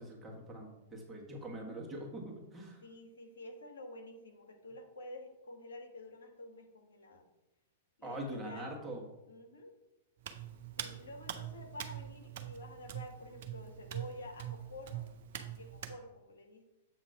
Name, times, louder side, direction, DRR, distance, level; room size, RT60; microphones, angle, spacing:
voice 1, 0.0-2.8 8.0-9.0, right 1 dB, 10° right, -2 dB, 1.4 m, -43 dB
voice 2, 2.8-7.3 8.0-8.7 9.3-9.8 10.8-15.0 15.4-16.6, left 1 dB, 70° left, 3 dB, 1.2 m, -49 dB
Hands, 10.2-16.0, right 11 dB, 55° right, 0.6 m, -44 dB
7.5 x 2.9 x 5.5 m, 0.96 s
figure-of-eight pair, 105°, 0 cm